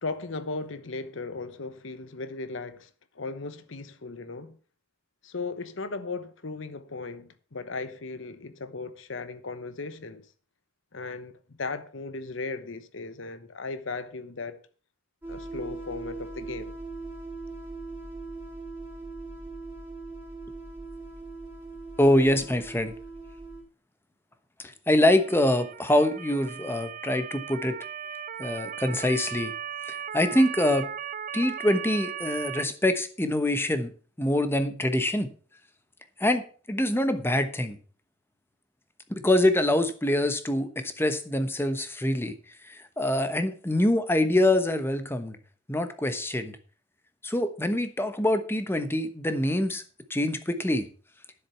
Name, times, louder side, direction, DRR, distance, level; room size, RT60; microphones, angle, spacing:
voice 1, 0.0-2.9 3.1-4.6 5.2-10.3 10.9-11.3 11.6-14.6 15.3-16.7, left 3 dB, 70° left, 1.0 m, -36 dB
sound 1, 15.2-23.6, right 3 dB, 10° right, 3.0 m, -40 dB
voice 2, 22.0-22.9 24.9-27.8 28.4-29.5 29.9-30.9 31.3-33.9 34.2-35.3 36.2-36.4 36.7-37.8 39.1-42.3 42.7-45.4 45.7-46.6 47.2-49.8 50.1-50.9, left 1 dB, 10° left, 1.0 m, -25 dB
Motor vehicle (road) / Siren, 25.2-32.6, right 9 dB, 40° right, 0.4 m, -37 dB
10.0 x 7.6 x 5.7 m
head